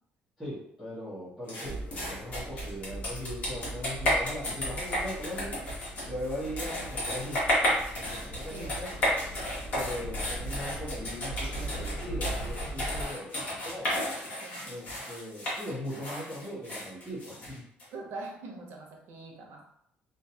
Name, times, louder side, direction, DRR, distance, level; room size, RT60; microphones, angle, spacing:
voice 1, 0.4-7.7 8.0-8.9 9.7-14.0 14.6-17.6, left 1 dB, ahead, -13 dB, 0.9 m, -39 dB
sound 1, 1.5-17.8, left 1 dB, 40° left, 1.0 m, -33 dB
sound 2, 1.6-13.1, right 1 dB, 70° left, 0.9 m, -39 dB
voice 2, 8.5-8.8 14.4-14.8 17.9-19.7, right 3 dB, 80° right, 1 dB, 0.6 m, -43 dB
2.6 x 2.2 x 2.7 m, 0.72 s
cardioid pair, 145°, 4 cm